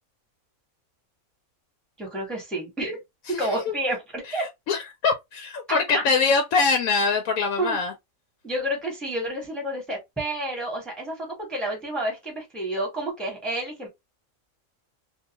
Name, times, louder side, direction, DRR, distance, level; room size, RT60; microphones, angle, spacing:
voice 1, 2.0-3.0 3.4-4.5 5.7-5.8 7.6-7.8 8.4-13.9, right 1 dB, ahead, 0.9 m, -30 dB
voice 2, 3.3-3.7 4.2-7.9, left 4 dB, 80° left, 1.0 m, -24 dB
2.5 x 2.2 x 2.8 m
omnidirectional pair, 1.4 m